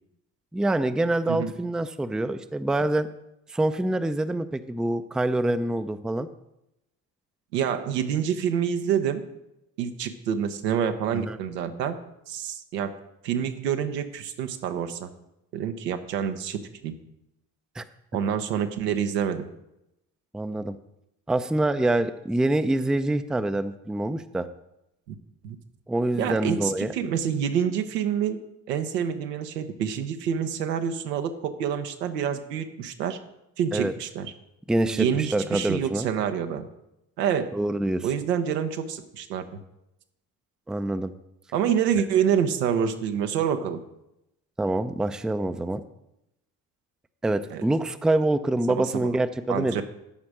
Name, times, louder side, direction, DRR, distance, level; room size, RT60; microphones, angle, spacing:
voice 1, 0.5-3.1 3.5-6.3 11.1-11.4 17.8-17.9 20.3-20.8 21.3-24.5 25.9-26.9 33.7-33.9 34.7-36.1 37.5-38.1 40.7-41.1 44.6-45.8 47.2-49.8, right 2 dB, ahead, 10 dB, 0.5 m, -25 dB
voice 2, 7.5-9.2 9.8-12.0 12.3-12.9 13.2-15.1 15.5-16.9 18.1-19.5 25.4-25.6 26.2-28.4 28.7-33.2 33.6-34.3 34.8-36.7 37.2-37.5 38.0-39.6 41.5-43.8 47.5-47.6 48.7-49.2 49.5-49.8, right 8 dB, 80° right, 7 dB, 0.9 m, -27 dB
12.5 x 5.2 x 6.1 m, 0.86 s
figure-of-eight pair, 50°, 48 cm